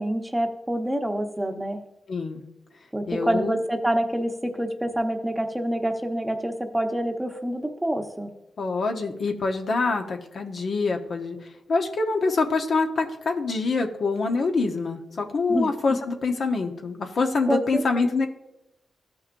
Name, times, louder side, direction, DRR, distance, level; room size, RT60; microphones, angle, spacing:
voice 1, 0.0-1.8 2.9-8.3 15.5-15.7 17.5-18.1, right 1 dB, 10° right, 4 dB, 0.9 m, -27 dB
voice 2, 2.1-2.4 3.1-3.6 8.6-11.4 11.7-18.3, left 3 dB, 65° left, 4 dB, 0.9 m, -25 dB
14.0 x 5.8 x 2.6 m, 0.89 s
cardioid pair, 75°, 0 cm